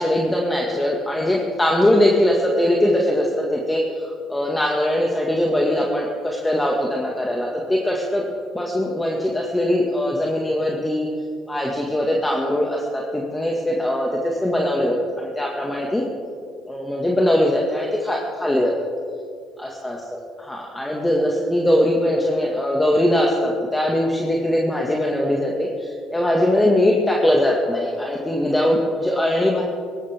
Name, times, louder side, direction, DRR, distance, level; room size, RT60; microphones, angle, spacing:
voice 1, 0.0-8.2 8.5-11.1 11.5-16.0 16.7-18.7 19.6-29.6, left 1 dB, 10° left, -1 dB, 2.0 m, -21 dB
18.0 x 15.0 x 3.7 m, 2.2 s
hypercardioid pair, 60°, 0 cm